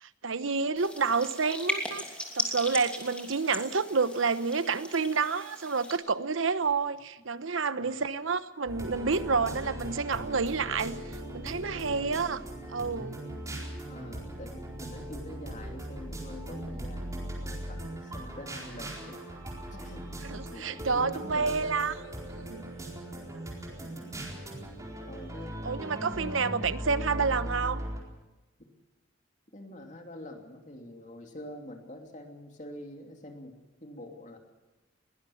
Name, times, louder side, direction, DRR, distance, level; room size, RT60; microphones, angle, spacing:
voice 1, 0.0-2.0 2.3-11.0 11.3-12.4 12.7-13.1 20.2-21.9 22.4-22.7 25.6-27.8, right 4 dB, 90° right, 13 dB, 1.0 m, -29 dB
sound 1, 0.8-6.0, left 1 dB, 5° left, 2.9 m, -37 dB
voice 2, 7.8-8.1 11.7-12.1 13.9-19.2 19.7-20.1 20.5-21.7 22.8-22.9 25.1-25.6 26.0-26.7 29.5-33.5 33.8-34.4, left 1 dB, 40° left, 3 dB, 2.9 m, -45 dB
sound 2, 8.7-28.0, right 1 dB, 15° right, 4.3 m, -39 dB
21.5 x 19.0 x 7.2 m, 1.1 s
head